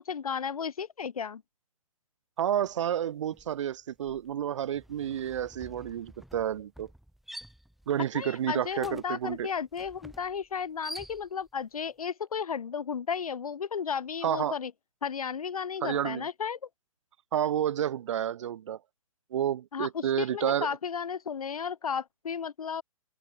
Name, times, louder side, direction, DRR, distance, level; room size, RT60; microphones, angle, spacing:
voice 1, 0.1-1.4 8.1-14.7 15.0-16.6 19.7-22.8, left 6 dB, 85° left, 1.7 m, -34 dB
voice 2, 2.4-6.9 7.9-9.5 14.2-14.5 15.8-16.3 17.3-18.8 19.3-20.8, right 10 dB, 55° right, 2.0 m, -30 dB
sound 1, 2.6-2.9 3.2-11.6, right 1 dB, ahead, 6.8 m, -49 dB
open air
hypercardioid pair, 150°, 18 cm